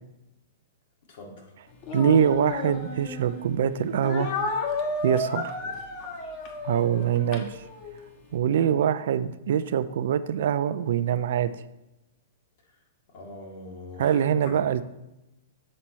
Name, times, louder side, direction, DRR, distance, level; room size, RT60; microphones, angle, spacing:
voice 1, 1.1-1.5 5.6-5.8 6.9-7.2 8.6-8.7 13.1-14.6, left 2 dB, 60° left, -1 dB, 1.9 m, -43 dB
Speech, 1.8-3.4 4.0-8.1, left 3 dB, 45° left, 1.1 m, -32 dB
voice 2, 1.9-4.3 5.0-5.5 6.6-7.6 8.3-11.5 14.0-14.9, right 9 dB, 70° right, 14 dB, 0.4 m, -24 dB
7.5 x 4.1 x 4.4 m, 0.94 s
hypercardioid pair, 130°, 0 cm